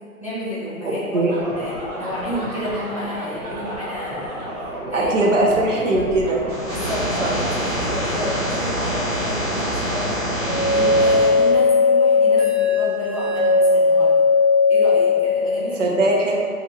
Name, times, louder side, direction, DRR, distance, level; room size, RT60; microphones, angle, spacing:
voice 1, 0.2-1.3 1.6-5.1 5.4-6.0 6.7-10.2 10.6-14.2 14.7-15.9, left 1 dB, 25° left, -11 dB, 0.4 m, -30 dB
voice 2, 0.8-1.3 4.9-6.4 7.2-7.3 15.8-16.4, right 2 dB, 55° right, -2 dB, 0.8 m, -20 dB
sound 1, 1.3-10.8, right 1 dB, 80° right, 1.3 m, -33 dB
sound 2, 6.5-11.5, equal, 5° right, 1.1 m, -25 dB
sound 3, 10.4-15.3, left 4 dB, 25° right, 0.6 m, -17 dB
3.0 x 2.5 x 4.1 m, 2.2 s
hypercardioid pair, 175°, 44 cm